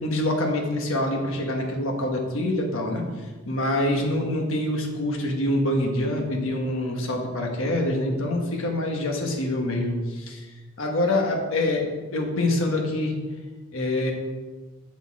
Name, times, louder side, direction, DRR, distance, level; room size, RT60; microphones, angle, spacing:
voice 1, 0.0-3.0 3.5-10.5 10.8-13.2 13.7-14.1, left 1 dB, 60° left, 1 dB, 1.3 m, -25 dB
6.4 x 6.3 x 4.7 m, 1.3 s
head